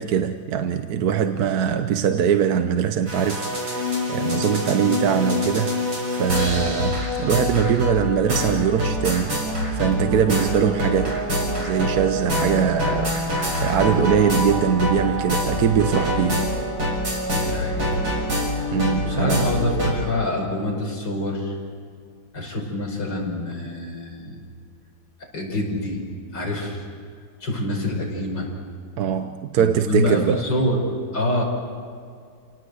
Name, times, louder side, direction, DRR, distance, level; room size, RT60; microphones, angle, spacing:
voice 1, 0.0-9.5 9.7-11.3 11.6-16.5 18.7-19.6 29.0-30.5, right 8 dB, 60° right, 8 dB, 1.2 m, -22 dB
sound 1, 3.1-19.9, left 1 dB, 85° right, 7.5 m, -25 dB
voice 2, 17.3-17.9 19.0-21.5 22.3-24.4 25.3-26.0 26.3-26.8 27.4-28.5 29.6-31.4, left 1 dB, 60° left, -1 dB, 5.8 m, -26 dB
29.0 x 18.5 x 8.0 m, 2.2 s
omnidirectional pair, 2.1 m